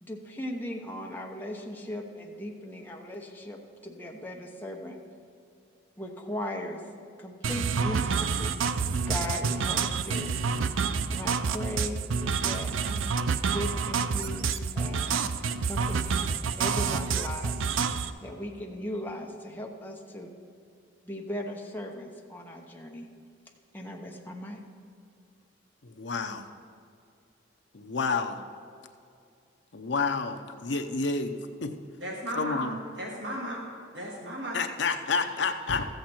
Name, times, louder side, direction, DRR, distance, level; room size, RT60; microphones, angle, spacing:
voice 1, 0.0-5.0 6.0-6.8 7.2-10.3 11.1-12.0 12.4-13.2 13.5-15.2 15.6-17.6 18.2-20.3 21.0-23.1 23.7-24.6, left 1 dB, 10° left, 0 dB, 0.9 m, -38 dB
sound 1, 7.4-18.1, right 5 dB, 85° right, 0.4 m, -28 dB
voice 2, 25.8-26.5 27.7-28.4 29.7-31.7 32.3-32.7 34.5-35.8, left 4 dB, 65° left, 7 dB, 0.7 m, -29 dB
voice 3, 32.0-33.6 33.9-34.6, right 1 dB, 65° right, -2 dB, 1.5 m, -35 dB
14.0 x 7.9 x 4.4 m, 2.5 s
head